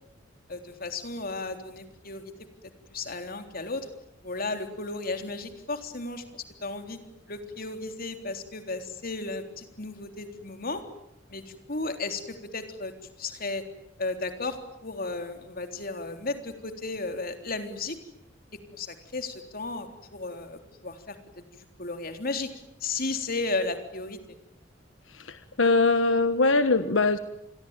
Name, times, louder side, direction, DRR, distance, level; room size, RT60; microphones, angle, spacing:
voice 1, 0.5-2.3 2.9-3.9 4.2-7.0 7.3-10.8 11.3-12.9 13.2-13.6 14.0-18.0 18.7-21.2 21.5-22.5 22.8-24.2, left 3 dB, 50° left, 7 dB, 3.7 m, -34 dB
voice 2, 25.2-27.2, left 3 dB, 90° left, 10 dB, 1.4 m, -22 dB
29.0 x 22.0 x 9.1 m, 0.81 s
head